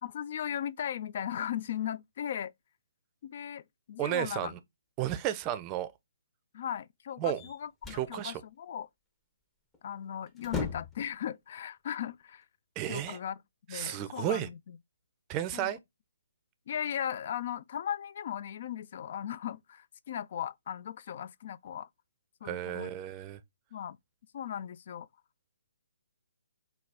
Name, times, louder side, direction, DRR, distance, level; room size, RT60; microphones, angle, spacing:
voice 1, 0.0-2.5 3.2-3.6 3.9-4.5 6.5-8.9 9.8-12.4 12.9-13.4 13.7-14.8 15.5-15.7 16.7-21.9 22.4-22.9 23.7-24.0 24.3-25.1, left 9 dB, 50° left, 0.3 m, -37 dB
voice 2, 4.0-4.6 5.0-5.9 7.2-7.4 7.9-8.4 12.8-13.2 13.7-14.5 15.3-15.8 22.4-23.4, right 12 dB, 25° right, 0.5 m, -33 dB
sound 1, 7.4-8.1 9.7-9.9 10.3-11.1, left 5 dB, 15° left, 0.7 m, -37 dB
4.0 x 2.3 x 3.4 m
figure-of-eight pair, 135°, 0 cm